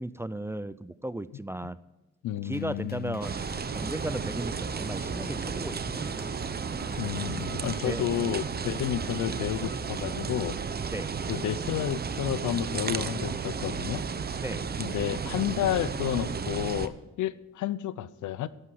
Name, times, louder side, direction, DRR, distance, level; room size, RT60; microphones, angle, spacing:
voice 1, 0.0-1.8 2.4-6.3 7.8-8.1 10.9-11.1 14.4-14.6, right 1 dB, 10° right, 16 dB, 0.4 m, -36 dB
voice 2, 2.2-3.2 7.0-10.6 11.3-14.0 14.8-18.5, left 12 dB, 75° left, 17 dB, 0.7 m, -31 dB
sound 1, 2.5-10.8, left 6 dB, 30° left, 0.6 m, -49 dB
sound 2, 3.2-16.9, right 5 dB, 30° right, 0.8 m, -33 dB
12.0 x 11.5 x 4.7 m, 1.1 s
cardioid pair, 90°, 30 cm